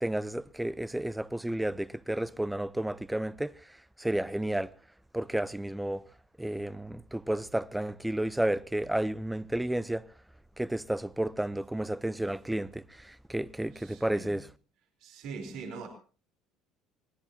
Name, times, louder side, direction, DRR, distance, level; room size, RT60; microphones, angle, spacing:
voice 1, 0.0-4.7 5.1-6.1 6.4-10.1 10.6-14.5, right 1 dB, 5° right, 0.8 m, -32 dB
voice 2, 13.7-14.3 15.0-15.9, right 5 dB, 65° right, 4.5 m, -42 dB
24.5 x 19.0 x 3.0 m
hypercardioid pair, 70°, 0 cm